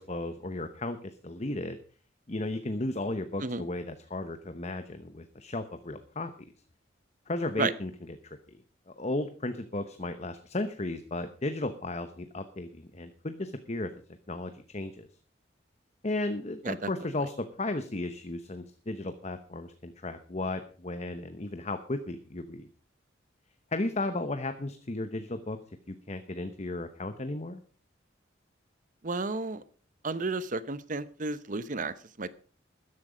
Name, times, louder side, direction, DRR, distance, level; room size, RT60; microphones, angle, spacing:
voice 1, 0.0-1.8 2.3-6.3 7.3-7.9 8.2-8.4 8.9-13.9 14.3-15.1 16.0-22.7 23.7-25.6 25.9-27.6, left 2 dB, 35° left, 9 dB, 0.9 m, -34 dB
voice 2, 29.0-29.6 30.0-32.3, right 3 dB, 45° right, 15 dB, 0.9 m, -32 dB
13.5 x 11.0 x 5.1 m, 0.39 s
head